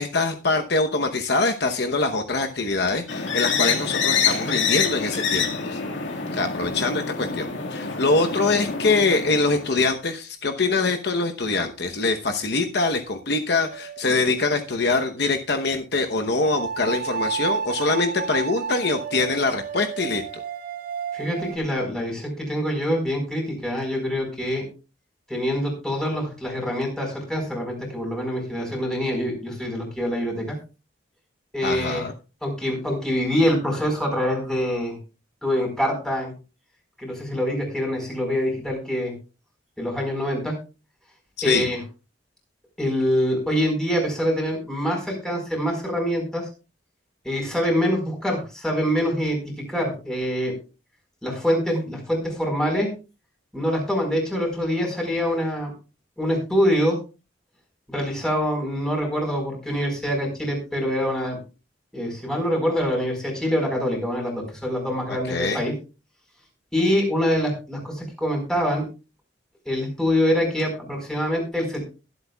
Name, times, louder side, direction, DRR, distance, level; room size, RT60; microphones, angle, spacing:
voice 1, 0.0-5.8 6.3-20.2 31.6-32.1 41.4-41.6 65.1-65.6, left 3 dB, 60° left, 6 dB, 0.9 m, -24 dB
sound 1, 3.1-9.8, left 6 dB, 80° left, 1.9 m, -26 dB
sound 2, 13.7-14.4 16.4-21.6, right 6 dB, 45° right, 0.8 m, -31 dB
voice 2, 21.1-24.6 25.3-30.6 31.5-32.1 32.4-35.0 35.4-36.3 37.0-39.1 39.8-40.6 41.4-41.8 42.8-46.5 47.2-49.4 49.7-50.5 51.2-52.9 53.5-55.7 56.2-57.0 57.9-61.4 61.9-65.7 66.7-68.9 69.6-71.8, equal, 5° left, 0 dB, 4.5 m, -25 dB
22.0 x 8.1 x 2.3 m, 0.31 s
head